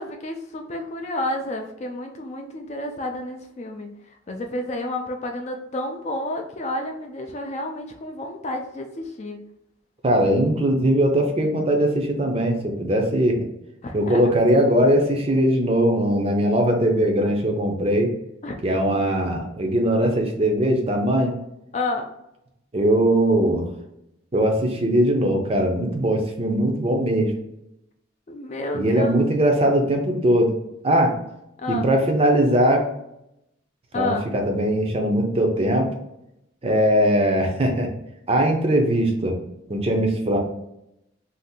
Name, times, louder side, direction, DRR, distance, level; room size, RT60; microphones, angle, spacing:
voice 1, 0.0-3.9 4.3-9.4 13.8-14.2 18.4-18.6 18.9-19.0 21.7-22.1 28.3-29.2 31.6-31.9 33.9-34.3, left 1 dB, 35° left, 4 dB, 0.3 m, -30 dB
voice 2, 10.0-13.4 13.9-18.1 18.6-21.3 22.7-23.6 24.3-27.3 28.7-30.5 30.8-31.1 31.7-32.9 33.9-35.9 36.6-37.9 38.3-39.4 39.7-40.4, right 1 dB, 30° right, 3 dB, 0.5 m, -20 dB
2.7 x 2.4 x 3.6 m, 0.83 s
head